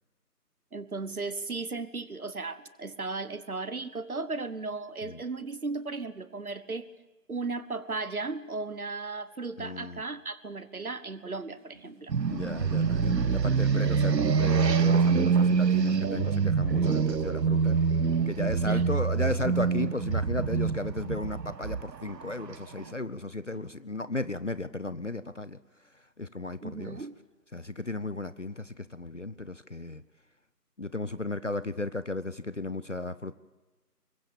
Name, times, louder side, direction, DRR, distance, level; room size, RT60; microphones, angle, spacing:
voice 1, 0.7-6.9 7.3-12.1 18.7-18.8 26.6-27.1, right 3 dB, 60° right, 15 dB, 1.4 m, -36 dB
voice 2, 9.6-10.0 12.3-17.8 18.3-27.1 27.5-30.0 30.8-33.3, left 2 dB, 50° left, 16 dB, 0.7 m, -35 dB
sound 1, 11.5-14.6 14.8-15.4 16.2-16.3 16.9-17.2 17.6-17.7 17.9-18.6 18.9-19.8 20.1-20.2 20.6-20.7 22.3-22.4 22.9-24.0, right 3 dB, 15° right, 2.8 m, -53 dB
sound 2, 12.1-22.8, right 5 dB, 85° right, 0.8 m, -25 dB
25.5 x 22.0 x 7.1 m, 1.2 s
figure-of-eight pair, 165°, 49 cm